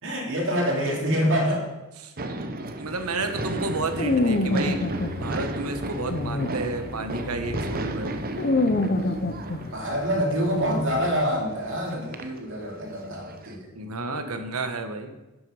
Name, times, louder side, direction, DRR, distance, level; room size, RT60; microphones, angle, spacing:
voice 1, 0.0-1.6 9.7-13.7, equal, 60° right, -1 dB, 2.6 m, -26 dB
sound 1, 2.2-13.5, right 2 dB, 40° right, 0.8 m, -35 dB
voice 2, 2.8-8.2 13.7-15.1, right 3 dB, 85° right, 7 dB, 1.2 m, -31 dB
sound 2, 2.9-11.1, left 2 dB, 45° left, 0.7 m, -28 dB
10.5 x 7.9 x 4.9 m, 1.0 s
head